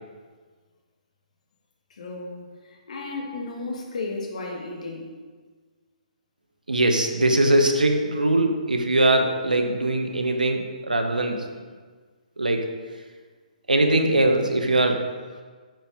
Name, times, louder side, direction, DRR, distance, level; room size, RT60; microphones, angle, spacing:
voice 1, 1.9-5.1, left 3 dB, 55° left, 1 dB, 1.7 m, -34 dB
voice 2, 6.7-11.4 12.4-12.6 13.7-15.0, right 1 dB, 80° right, 4 dB, 1.1 m, -21 dB
9.0 x 5.6 x 4.9 m, 1.5 s
figure-of-eight pair, 130°, 4 cm